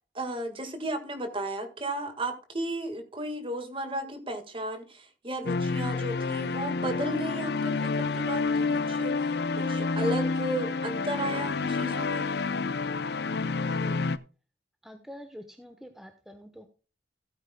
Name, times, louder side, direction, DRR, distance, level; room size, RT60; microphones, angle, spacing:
voice 1, 0.1-12.3, right 1 dB, 30° right, 8 dB, 1.6 m, -34 dB
sound 1, 5.5-14.2, left 4 dB, 60° left, 0.6 m, -29 dB
voice 2, 13.5-14.1 14.8-16.7, equal, ahead, 6 dB, 1.0 m, -46 dB
16.0 x 9.0 x 2.2 m, 0.33 s
head